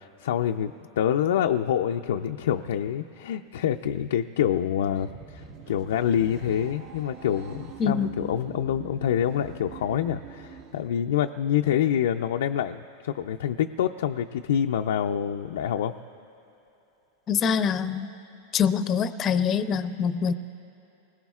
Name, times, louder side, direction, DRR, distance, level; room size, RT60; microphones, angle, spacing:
voice 1, 0.0-15.9, left 9 dB, 85° left, 4 dB, 0.4 m, -26 dB
sound 1, 4.6-10.9, right 6 dB, 55° right, 1.2 m, -44 dB
voice 2, 17.3-18.1 18.5-20.3, left 7 dB, 30° left, 11 dB, 0.5 m, -24 dB
28.0 x 20.5 x 2.4 m, 2.9 s
supercardioid pair, 145°, 0 cm